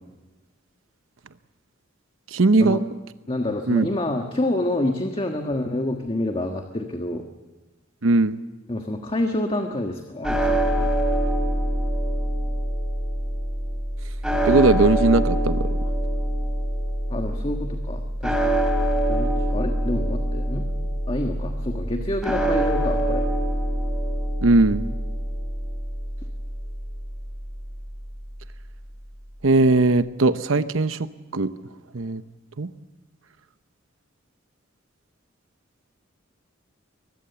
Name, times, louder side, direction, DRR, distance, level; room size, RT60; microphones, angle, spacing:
voice 1, 2.3-2.8 3.7-3.9 8.0-8.4 14.5-15.7 24.4-24.8 29.4-31.1 31.3-31.5 31.9-32.2 32.6-32.7, right 2 dB, 80° right, 12 dB, 0.9 m, -19 dB
voice 2, 3.3-7.3 8.7-10.9 17.1-18.6 19.1-20.7 21.1-23.2, left 1 dB, 30° left, 4 dB, 1.5 m, -27 dB
sound 1, 10.2-28.5, right 1 dB, 5° right, 2.8 m, -25 dB
23.0 x 20.5 x 7.0 m, 1.2 s
head